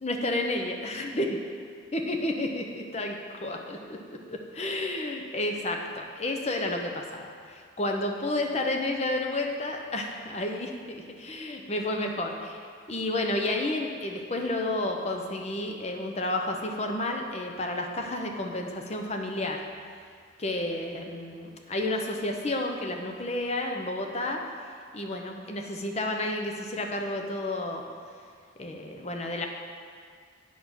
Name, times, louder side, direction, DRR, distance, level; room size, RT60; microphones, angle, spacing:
voice 1, 0.0-1.4 1.9-3.1 3.4-19.6 20.4-24.4 24.9-27.8 28.6-29.5, left 1 dB, 35° left, 2 dB, 0.7 m, -31 dB
8.5 x 5.4 x 6.1 m, 2.1 s
head